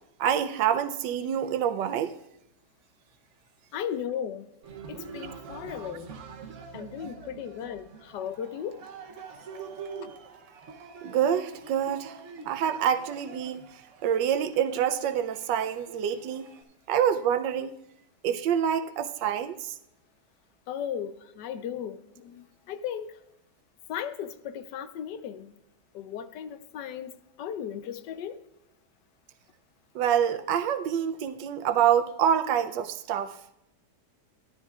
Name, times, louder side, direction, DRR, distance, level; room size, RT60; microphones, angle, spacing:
voice 1, 0.2-2.1 11.0-12.2 12.5-13.6 14.0-16.4 16.9-17.8 18.2-19.8 29.9-33.4, right 9 dB, 85° right, 1.3 m, -26 dB
voice 2, 3.7-4.5 4.9-6.1 6.7-8.8 20.7-23.1 23.9-25.5 25.9-27.1 27.4-28.4, left 9 dB, 80° left, 1.3 m, -36 dB
Cheering, 4.6-16.6, right 5 dB, 50° right, 1.1 m, -45 dB
14.0 x 11.5 x 2.4 m
omnidirectional pair, 1.9 m